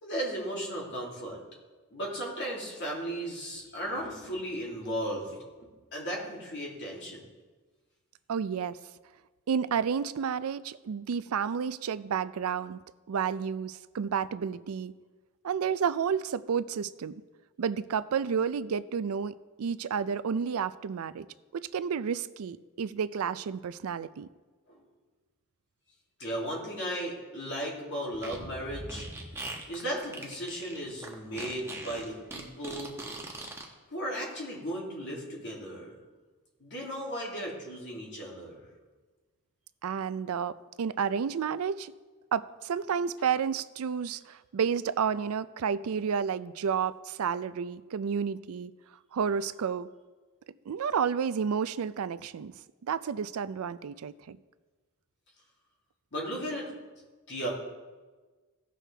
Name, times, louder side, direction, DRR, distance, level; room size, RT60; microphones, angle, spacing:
voice 1, 0.0-1.4 1.9-7.2 26.2-29.1 29.7-32.9 33.9-35.9 36.6-38.6 56.1-56.7 57.3-57.5, equal, 55° left, -3 dB, 2.7 m, -36 dB
voice 2, 8.3-8.8 9.5-12.8 13.1-14.9 15.4-17.1 17.6-21.3 21.5-24.3 39.8-41.9 42.3-48.7 49.1-49.9 50.7-52.5 52.9-54.4, right 7 dB, 85° right, 16 dB, 0.4 m, -31 dB
Fart, 28.1-33.6, right 2 dB, 10° right, 1.1 m, -41 dB
16.5 x 6.3 x 3.3 m, 1.3 s
head